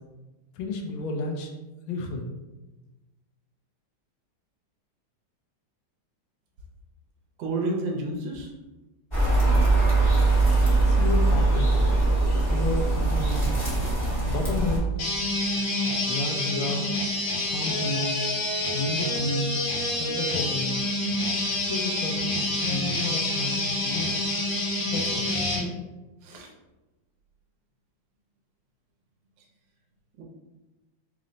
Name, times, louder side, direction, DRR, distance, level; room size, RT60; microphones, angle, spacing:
voice 1, 0.5-1.5 1.9-2.3 10.8-11.8 12.5-13.6 14.2-14.9 16.0-16.9 17.4-18.2 18.7-19.6 19.9-20.7 21.5-24.3 24.9-25.3, left 2 dB, 80° left, 2 dB, 1.4 m, -31 dB
voice 2, 7.4-8.5 26.2-26.5 30.1-30.2, right 2 dB, 70° right, 1 dB, 1.3 m, -30 dB
sound 1, 9.1-14.8, right 2 dB, 25° left, 0.6 m, -21 dB
sound 2, 15.0-25.7, left 1 dB, 60° left, 0.9 m, -27 dB
3.9 x 2.1 x 3.8 m, 1.1 s
omnidirectional pair, 2.2 m